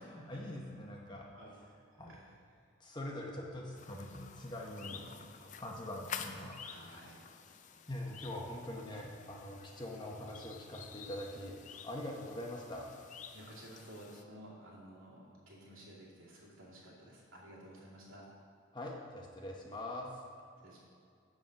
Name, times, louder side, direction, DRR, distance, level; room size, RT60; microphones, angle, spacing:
voice 1, 0.0-1.3 2.0-2.1 2.8-5.0 5.6-6.5 7.9-12.9 18.7-20.2, left 1 dB, 20° left, -1 dB, 0.8 m, -43 dB
voice 2, 1.9-2.7 4.8-5.6 6.6-7.3 13.3-18.3 20.6-20.8, right 1 dB, 80° right, -5 dB, 2.5 m, -54 dB
sound 1, 3.8-14.2, left 7 dB, 35° left, 0.4 m, -50 dB
7.6 x 7.3 x 5.2 m, 2.4 s
head